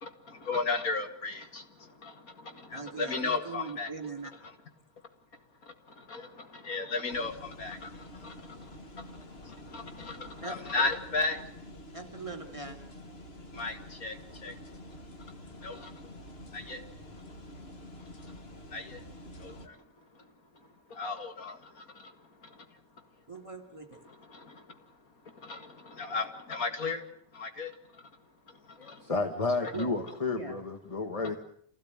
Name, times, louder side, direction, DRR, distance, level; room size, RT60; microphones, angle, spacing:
voice 1, 0.0-3.9 5.6-11.4 13.5-14.6 15.6-16.0 16.5-16.8 18.0-18.4 18.7-19.0 19.4-19.9 20.1-23.1 24.0-25.0 25.2-27.0 27.3-28.2 28.5-29.1 29.6-29.7, left 3 dB, 65° left, 7 dB, 2.6 m, -36 dB
voice 2, 2.7-4.3 10.4-10.9 11.9-12.8 23.3-24.0 29.7-30.0 30.3-30.6, right 4 dB, 20° right, 5 dB, 2.8 m, -41 dB
sound 1, 7.1-19.7, left 1 dB, 40° left, 2.2 m, -48 dB
voice 3, 28.8-31.4, left 3 dB, 20° left, 5 dB, 1.9 m, -31 dB
26.5 x 17.0 x 9.0 m, 0.63 s
omnidirectional pair, 1.6 m